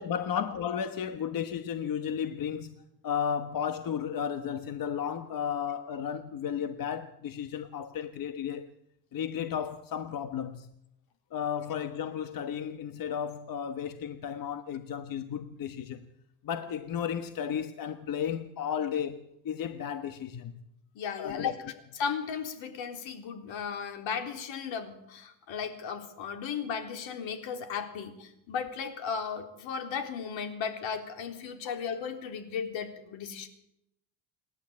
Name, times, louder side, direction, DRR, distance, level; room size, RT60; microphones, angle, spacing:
voice 1, 0.0-2.7 3.0-8.7 9.1-10.7 11.3-16.0 16.4-20.6 21.2-21.5 31.6-31.7, left 8 dB, 40° left, 1.3 m, -33 dB
voice 2, 20.9-21.5 22.0-33.5, left 6 dB, 65° left, 3.8 m, -36 dB
28.0 x 11.5 x 8.7 m
supercardioid pair, 105°, 49 cm